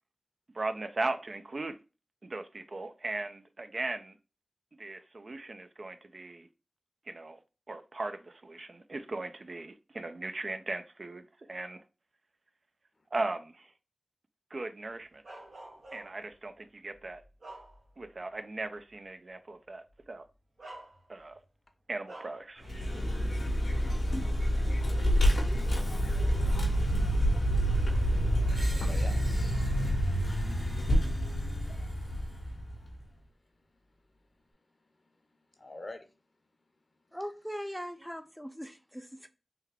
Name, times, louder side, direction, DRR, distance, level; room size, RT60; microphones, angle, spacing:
voice 1, 0.5-1.8 2.2-4.1 4.8-6.5 7.1-7.4 7.7-11.8 13.1-13.7 14.5-15.2 15.9-17.2 18.0-20.2 21.1-21.4 21.9-23.2 24.4-24.5, right 2 dB, 60° right, 0.4 m, -38 dB
Bark, 15.2-16.3 16.9-18.2 18.6-18.8 19.9-20.0 20.6-21.4 22.1-22.5, right 2 dB, 80° right, 1.0 m, -48 dB
Vehicle, 22.6-33.0, equal, 85° left, 0.9 m, -28 dB
voice 2, 25.3-26.3 26.6-26.8 28.7-29.7 35.6-36.1, left 2 dB, 55° left, 0.7 m, -48 dB
Screech, 28.5-32.5, right 1 dB, 30° right, 1.0 m, -50 dB
voice 3, 37.1-39.3, equal, ahead, 0.5 m, -40 dB
3.4 x 2.3 x 3.4 m
cardioid pair, 40°, 0 cm